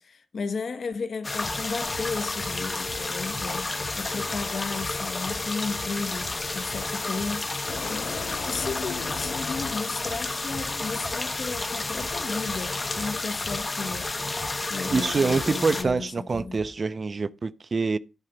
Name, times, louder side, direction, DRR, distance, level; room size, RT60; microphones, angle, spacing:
voice 1, 0.0-14.1 14.7-16.6, left 4 dB, 55° left, 1.0 m, -34 dB
sound 1, 1.2-15.8, left 2 dB, 25° left, 1.0 m, -31 dB
sound 2, 1.4-16.8, right 2 dB, 55° right, 2.6 m, -46 dB
sound 3, 3.3-10.1, left 6 dB, 85° left, 1.4 m, -40 dB
voice 2, 14.9-18.0, right 4 dB, 35° right, 0.4 m, -25 dB
11.0 x 4.1 x 6.3 m
wide cardioid pair, 150°, 0 cm